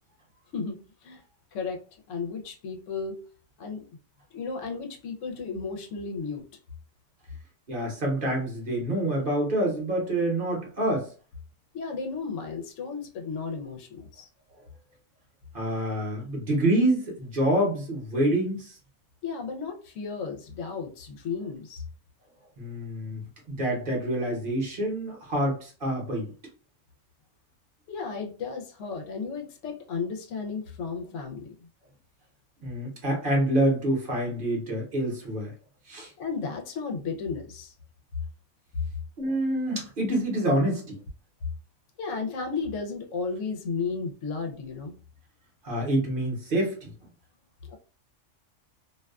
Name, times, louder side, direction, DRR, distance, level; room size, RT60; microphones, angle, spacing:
voice 1, 2.1-3.2 3.6-3.8 4.3-6.4 11.7-14.3 19.2-21.8 27.9-31.6 36.2-37.7 42.0-45.0 47.7-47.8, left 5 dB, 85° left, 1.0 m, -34 dB
voice 2, 7.7-11.1 15.5-18.7 22.6-26.3 32.6-35.5 35.9-36.1 39.2-41.0 45.6-46.9, right 1 dB, 45° right, 1.0 m, -27 dB
2.5 x 2.2 x 2.3 m
omnidirectional pair, 1.3 m